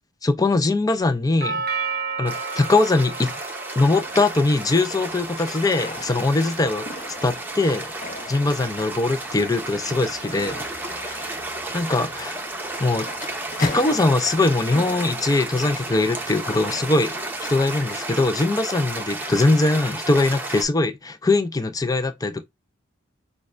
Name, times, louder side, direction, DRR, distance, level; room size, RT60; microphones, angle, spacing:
voice 1, 0.2-1.7 2.2-3.3 3.8-6.9 7.2-7.9 8.3-10.6 10.9-11.3 11.7-12.4 12.8-13.1 13.6-17.1 17.5-22.4, left 2 dB, 15° left, 0.4 m, -21 dB
Doorbell, 1.4-9.5, right 5 dB, 50° right, 0.6 m, -35 dB
sound 1, 2.3-20.6, right 2 dB, 10° right, 0.8 m, -33 dB
sound 2, 3.8-18.4, left 3 dB, 40° left, 0.8 m, -40 dB
6.3 x 2.3 x 2.5 m
head